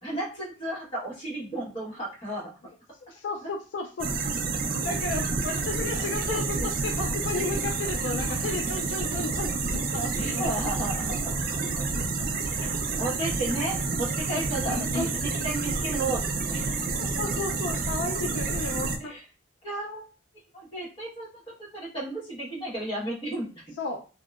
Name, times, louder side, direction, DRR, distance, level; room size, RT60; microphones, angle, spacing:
voice 1, 0.0-2.5 6.3-6.7 10.2-11.2 11.7-11.8 12.5-12.7 13.0-16.6 19.0-19.2 19.6-20.0 20.5-21.3 21.6-23.7, right 1 dB, 30° left, -6 dB, 1.2 m, -33 dB
voice 2, 3.0-4.1 4.8-10.5 14.6-15.1 16.9-19.1 23.8-24.1, left 3 dB, 75° left, 2 dB, 0.4 m, -33 dB
sound 1, 4.0-19.0, right 4 dB, 45° right, 0.3 m, -29 dB
2.7 x 2.0 x 2.3 m, 0.35 s
head